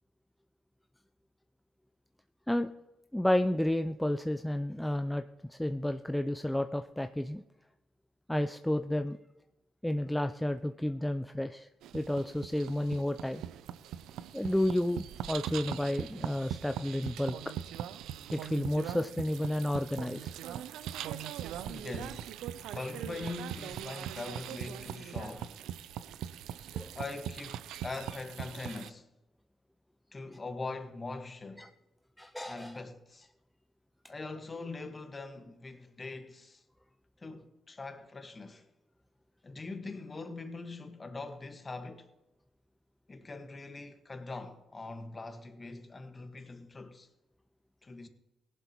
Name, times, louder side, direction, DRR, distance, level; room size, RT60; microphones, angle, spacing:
voice 1, 3.1-5.2 5.5-7.4 8.3-9.2 9.8-11.7 11.9-13.4 14.3-17.4 18.3-20.3 26.7-26.9 31.6-31.7 32.2-32.7, left 1 dB, 5° left, 0.5 m, -31 dB
sound 1, 11.8-28.9, right 10 dB, 85° right, 0.5 m, -41 dB
voice 2, 21.6-22.3 22.7-25.7 26.9-29.1 30.1-31.7 32.4-33.3 34.1-36.6 37.2-38.7 39.4-42.1 43.1-47.1 47.8-48.1, left 3 dB, 30° left, 1.6 m, -42 dB
17.5 x 11.0 x 3.1 m
cardioid pair, 80°, 0 cm